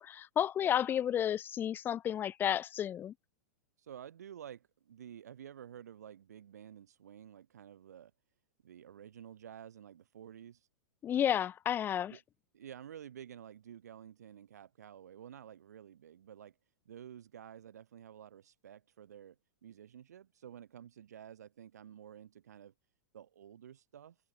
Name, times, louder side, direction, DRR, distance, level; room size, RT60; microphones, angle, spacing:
voice 1, 0.0-3.1 11.0-12.1, left 10 dB, 25° left, 0.4 m, -32 dB
voice 2, 3.8-8.1 8.6-10.7 12.1-12.2 12.5-16.6 16.8-22.7 23.1-24.2, right 9 dB, 75° right, 2.7 m, -51 dB
hypercardioid pair, 100°, 9 cm